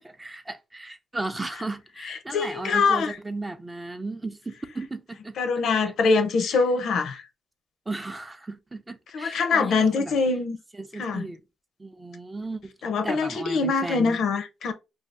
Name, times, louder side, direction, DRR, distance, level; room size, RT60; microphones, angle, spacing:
voice 1, 0.2-5.3 6.4-6.5 7.9-10.1 10.8-11.4 11.8-12.7 13.0-14.2, right 2 dB, 15° right, 0.4 m, -35 dB
voice 2, 2.0-3.1 5.4-7.2 9.1-10.6 11.0-11.3 12.8-14.7, left 4 dB, 70° left, 0.6 m, -24 dB
2.7 x 2.3 x 3.3 m
cardioid pair, 90°, 0 cm